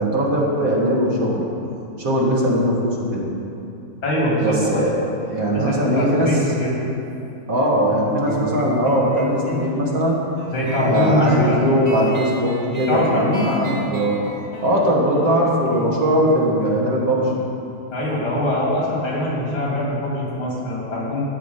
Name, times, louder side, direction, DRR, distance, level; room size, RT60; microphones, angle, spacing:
voice 1, 0.0-1.4 2.0-3.3 4.4-4.9 5.2-6.3 7.5-10.2 10.8-14.2 14.6-17.4, equal, 45° right, -3 dB, 2.0 m, -20 dB
voice 2, 4.0-4.8 5.5-6.8 10.5-11.7 12.9-13.5 17.9-21.2, left 1 dB, 80° left, -5 dB, 3.7 m, -22 dB
sound 1, 8.3-19.4, right 1 dB, 25° right, 1.2 m, -33 dB
12.5 x 5.0 x 8.9 m, 2.8 s
omnidirectional pair, 2.2 m